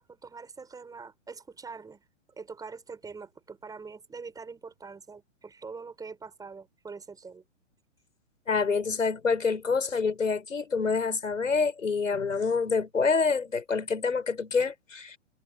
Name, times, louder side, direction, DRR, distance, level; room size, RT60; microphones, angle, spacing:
voice 1, 0.0-2.0 2.4-7.4, right 4 dB, 10° right, 7.4 m, -44 dB
voice 2, 8.5-15.2, left 4 dB, 75° left, 7.3 m, -27 dB
figure-of-eight pair, 120°, 39 cm